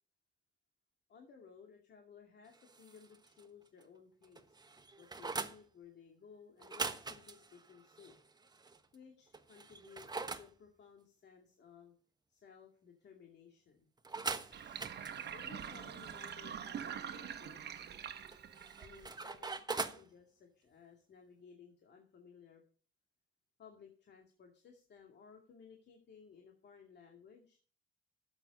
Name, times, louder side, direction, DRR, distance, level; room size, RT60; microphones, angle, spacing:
voice 1, 1.1-4.6 5.0-8.1 8.9-11.9 12.3-13.9 15.3-17.8 18.8-22.6 23.6-27.6, left 6 dB, 60° left, 2 dB, 2.4 m, -58 dB
sound 1, 2.5-3.5 3.8-3.9 4.2-5.6 6.6-8.8 9.3-10.5 14.0-16.3 18.3-20.1, right 3 dB, 20° right, 1.2 m, -43 dB
Sink (filling or washing), 14.5-19.4, right 8 dB, 55° right, 1.3 m, -45 dB
12.0 x 8.1 x 5.3 m, 0.41 s
cardioid pair, 90°, 20 cm